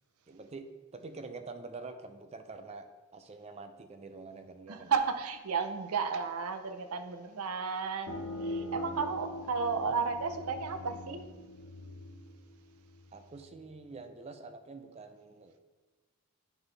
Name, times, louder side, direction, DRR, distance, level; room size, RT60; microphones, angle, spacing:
voice 1, 0.3-0.7 0.9-2.9 3.1-4.9 9.8-9.9 13.1-15.5, right 3 dB, 30° right, 8 dB, 0.4 m, -46 dB
voice 2, 4.7-11.2, right 5 dB, 85° right, 9 dB, 0.5 m, -33 dB
sound 1, 8.1-13.5, left 1 dB, 70° left, 0.8 m, -42 dB
9.1 x 4.0 x 3.3 m, 1.3 s
head